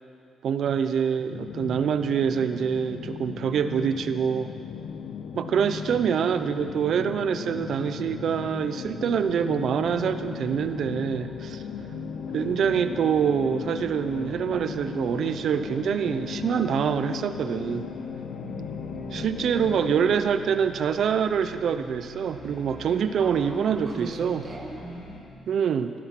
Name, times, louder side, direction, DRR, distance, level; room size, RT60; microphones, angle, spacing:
voice 1, 0.4-4.5 5.3-11.6 12.3-17.8 19.1-24.4 25.5-25.9, right 7 dB, 60° right, 10 dB, 0.7 m, -25 dB
sound 1, 1.3-20.2, left 7 dB, 80° left, 0.7 m, -36 dB
sound 2, 9.6-25.2, left 4 dB, 45° left, 2.5 m, -46 dB
voice 2, 18.4-19.3 23.2-25.4, right 3 dB, 30° right, 1 dB, 1.8 m, -40 dB
15.0 x 12.5 x 6.0 m, 2.4 s
cardioid pair, 135°, 0 cm